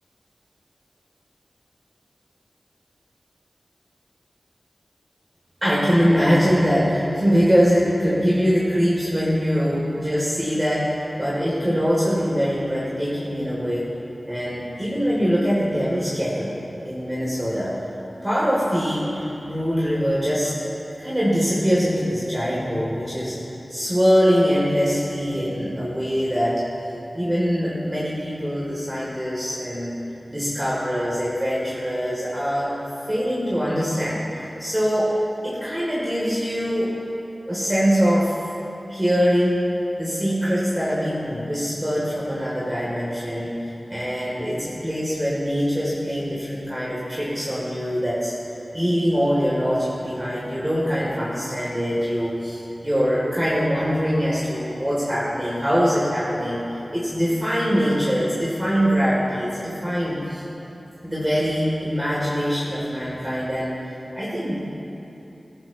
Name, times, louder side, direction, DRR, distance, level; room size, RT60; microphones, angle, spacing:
voice 1, 5.6-13.9 14.3-16.5 16.8-17.7 18.2-20.5 21.0-23.3 23.7-26.6 27.1-30.0 30.3-32.7 33.1-35.1 35.4-36.9 37.5-38.3 38.9-39.6 40.0-48.3 48.7-56.6 56.9-60.4 61.0-63.7 64.1-64.6, equal, 20° right, -8 dB, 3.3 m, -23 dB
19.0 x 13.5 x 3.1 m, 2.9 s
wide cardioid pair, 70°, 0 cm